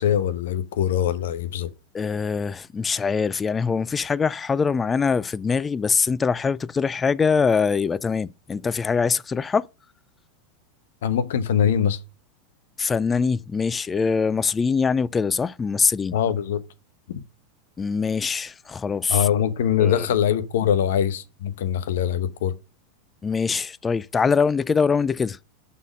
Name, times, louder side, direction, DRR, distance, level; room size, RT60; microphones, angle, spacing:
voice 1, 0.0-1.7 11.0-12.0 16.1-16.6 17.1-17.2 19.1-22.5, left 9 dB, 80° left, 0.8 m, -22 dB
voice 2, 1.9-9.7 12.8-16.2 17.8-19.3 19.8-20.1 23.2-25.4, left 5 dB, 20° left, 0.3 m, -23 dB
5.7 x 4.1 x 6.2 m
hypercardioid pair, 115°, 0 cm